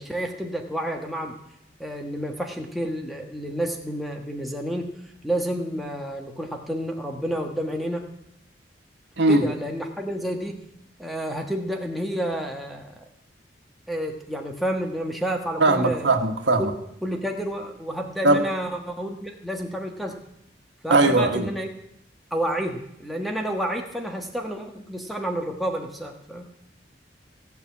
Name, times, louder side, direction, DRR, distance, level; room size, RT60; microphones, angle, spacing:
voice 1, 0.0-1.4 1.8-4.9 5.2-8.1 9.3-10.6 11.0-13.0 13.9-16.1 17.0-20.2 20.8-21.7 22.3-26.5, right 1 dB, ahead, 1 dB, 1.3 m, -30 dB
voice 2, 15.6-16.7 18.2-18.4 20.9-21.5, right 2 dB, 80° right, 5 dB, 1.4 m, -19 dB
16.0 x 5.9 x 8.4 m, 0.81 s
head